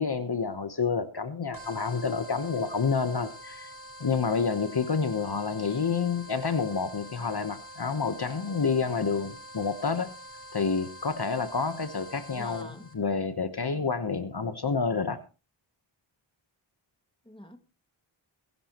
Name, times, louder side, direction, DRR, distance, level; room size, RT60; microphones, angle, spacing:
voice 1, 0.0-3.7 4.0-10.1 10.5-12.7 12.9-15.2, left 5 dB, 50° left, 1.1 m, -29 dB
sound 1, 1.5-12.9, equal, 45° right, 5.1 m, -46 dB
voice 2, 5.5-5.9 12.3-12.9 17.3-17.6, left 1 dB, 10° left, 2.0 m, -46 dB
21.5 x 11.0 x 3.0 m
wide cardioid pair, 65°, 48 cm